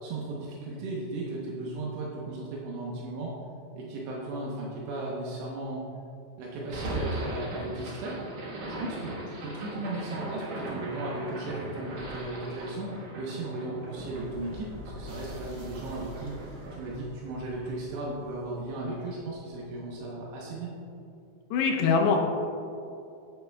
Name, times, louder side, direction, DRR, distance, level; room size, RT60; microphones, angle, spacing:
voice 1, 0.0-3.4 3.7-5.8 6.4-8.2 8.6-20.7, right 2 dB, 80° right, -4 dB, 3.1 m, -36 dB
sound 1, 6.7-18.9, right 1 dB, 60° right, 2.3 m, -39 dB
voice 2, 21.5-22.2, left 5 dB, 80° left, 1 dB, 2.9 m, -23 dB
10.5 x 9.3 x 2.3 m, 2.7 s
omnidirectional pair, 4.9 m